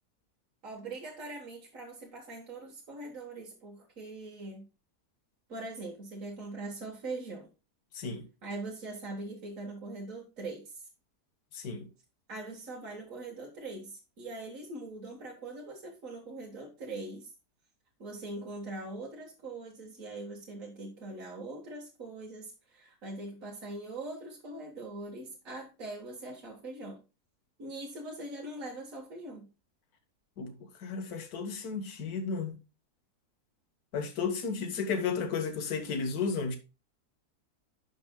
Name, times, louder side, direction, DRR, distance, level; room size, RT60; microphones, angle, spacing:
voice 1, 0.6-4.7 5.5-7.5 8.4-10.8 12.3-17.3 18.0-27.0 27.6-29.5, right 2 dB, 55° right, 1.9 m, -42 dB
voice 2, 7.9-8.3 11.5-11.9 30.4-30.5 30.8-32.6 33.9-36.6, left 5 dB, 70° left, 1.7 m, -33 dB
11.5 x 6.0 x 2.2 m
omnidirectional pair, 1.7 m